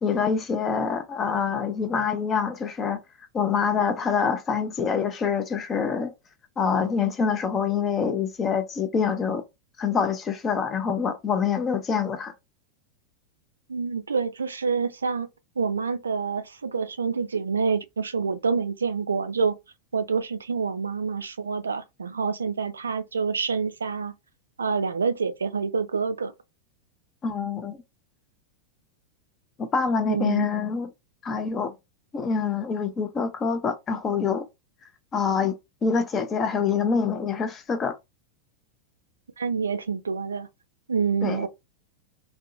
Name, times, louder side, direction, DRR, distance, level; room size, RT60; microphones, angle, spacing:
voice 1, 0.0-3.0 3.3-6.1 6.6-9.4 9.8-12.3 27.2-27.8 29.6-30.9 31.2-31.7 32.1-34.5 35.1-35.5 35.8-38.0 41.2-41.5, left 6 dB, 25° left, 0.5 m, -25 dB
voice 2, 13.7-15.3 15.6-19.6 19.9-24.1 24.6-26.3 30.1-30.5 39.4-40.5 40.9-41.5, right 5 dB, 75° right, 0.3 m, -27 dB
2.6 x 2.1 x 2.5 m
figure-of-eight pair, 90°, 0 cm